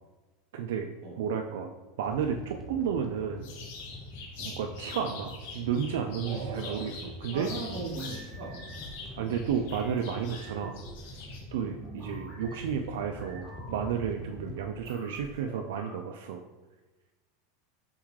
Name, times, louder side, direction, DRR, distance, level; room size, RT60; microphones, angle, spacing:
voice 1, 0.5-0.9 1.2-1.7 2.0-3.5 4.4-7.5 9.2-10.8 11.5-16.4, right 7 dB, 75° right, 4 dB, 0.3 m, -32 dB
sound 1, 2.0-14.6, left 1 dB, 5° left, 0.5 m, -45 dB
sound 2, 3.4-8.2 8.5-11.4, left 4 dB, 60° left, 1.1 m, -44 dB
voice 2, 6.2-6.9 7.3-8.7, right 3 dB, 45° right, 1 dB, 0.9 m, -39 dB
sound 3, 7.7-16.0, right 1 dB, 15° right, 1.4 m, -49 dB
4.3 x 3.6 x 3.1 m, 1.2 s
supercardioid pair, 170°, 0 cm